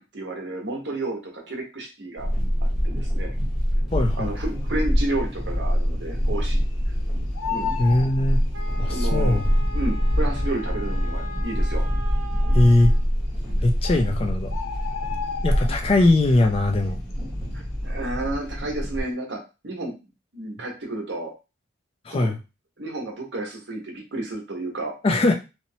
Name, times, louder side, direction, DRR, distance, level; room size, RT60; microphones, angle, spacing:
voice 1, 0.0-2.3 2.8-3.3 4.2-6.6 7.4-7.7 8.7-9.4 9.7-11.8 17.5-19.9 20.3-21.3 22.1-22.3 22.8-24.9, right 2 dB, 60° right, 0 dB, 0.9 m, -31 dB
sound 1, 2.2-19.0, equal, ahead, 0.8 m, -25 dB
voice 2, 3.9-4.3 7.8-8.4 8.8-9.4 12.5-12.9 13.6-14.5 15.4-17.0 22.1-22.4 25.0-25.3, left 2 dB, 30° left, 4 dB, 0.3 m, -20 dB
Bird, 4.4-5.0 5.4-5.5 5.7-6.9 7.2-9.0 9.9-10.0 10.6-10.7 10.9-11.0 11.6-12.1 13.1-13.2 13.5-13.6 13.8-16.1 16.5-16.8 17.1-18.5 18.8-19.1, left 7 dB, 85° left, 0.5 m, -34 dB
Wind instrument woodwind instrument, 8.5-13.1, equal, 85° right, 0.5 m, -40 dB
2.9 x 2.0 x 2.7 m, 0.28 s
head